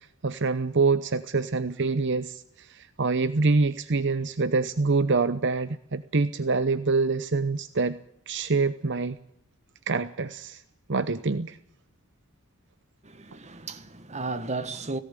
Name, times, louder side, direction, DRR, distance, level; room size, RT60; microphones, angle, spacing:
voice 1, 0.2-8.0 8.3-9.2 9.9-10.6 10.9-11.6, right 3 dB, 55° right, 0.9 m, -25 dB
voice 2, 13.0-15.0, right 3 dB, 30° right, 1.4 m, -34 dB
18.5 x 17.5 x 9.0 m
head